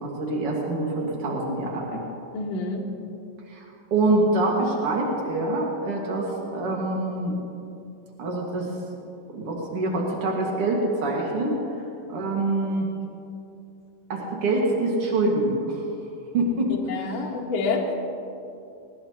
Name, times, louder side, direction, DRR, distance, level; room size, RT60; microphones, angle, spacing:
voice 1, 0.0-2.0 3.5-3.6 3.9-7.3 8.2-8.7 9.3-11.6 12.1-12.9 14.1-15.8 16.3-16.7, right 2 dB, 85° right, -2 dB, 1.2 m, -25 dB
voice 2, 2.3-2.8 16.9-17.9, left 3 dB, 65° left, -2 dB, 1.6 m, -27 dB
20.0 x 19.5 x 2.9 m, 2.7 s
omnidirectional pair, 5.7 m